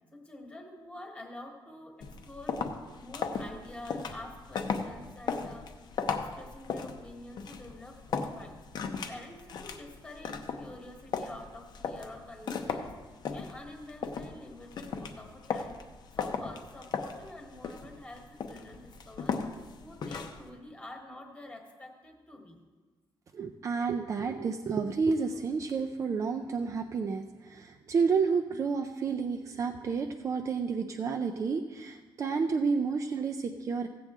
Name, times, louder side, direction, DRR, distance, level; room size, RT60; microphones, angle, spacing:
voice 1, 0.1-2.6 3.0-8.6 9.1-15.7 16.1-19.4 19.8-22.6, left 1 dB, 10° left, 2 dB, 1.3 m, -47 dB
sound 1, 2.0-20.5, left 5 dB, 50° left, 0.7 m, -37 dB
voice 2, 23.3-33.9, right 5 dB, 35° right, 4 dB, 0.4 m, -30 dB
15.5 x 7.7 x 3.6 m, 1.3 s
wide cardioid pair, 175°, 9 cm